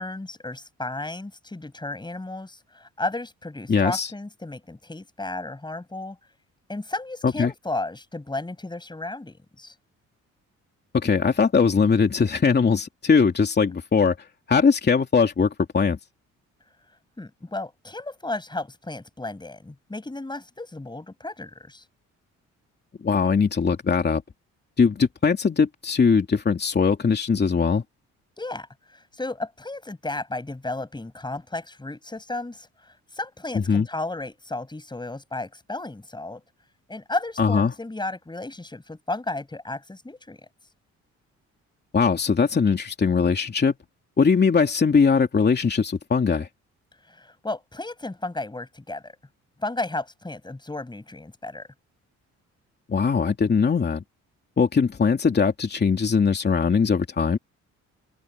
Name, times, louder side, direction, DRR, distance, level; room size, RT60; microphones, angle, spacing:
voice 1, 0.0-6.2 6.7-9.7 17.2-21.8 28.4-28.7 28.9-32.7 33.1-36.4 36.9-40.4 47.1-49.1 49.6-51.7, left 2 dB, 15° left, 7.2 m, -33 dB
voice 2, 3.7-4.1 7.2-7.5 10.9-14.1 14.5-16.0 23.0-24.2 24.8-27.8 33.5-33.9 37.4-37.7 41.9-43.7 44.2-46.5 52.9-54.0 54.6-57.4, left 5 dB, 35° left, 2.7 m, -21 dB
open air
cardioid pair, 90°, 30 cm